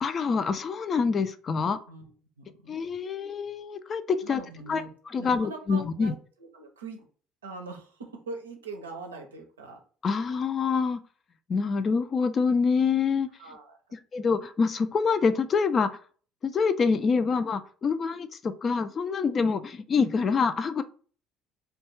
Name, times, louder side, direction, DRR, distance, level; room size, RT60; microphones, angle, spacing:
voice 1, 0.0-1.8 2.7-4.4 4.7-4.8 5.1-6.1 10.0-11.0 11.5-13.3 13.9-15.9 16.4-20.8, left 5 dB, 40° left, 10 dB, 0.3 m, -26 dB
voice 2, 1.9-2.8 4.2-4.9 5.2-7.1 7.4-9.8 13.4-13.8, right 3 dB, 90° right, 3 dB, 0.5 m, -42 dB
2.3 x 2.2 x 3.0 m, 0.42 s
hypercardioid pair, 60°, 0 cm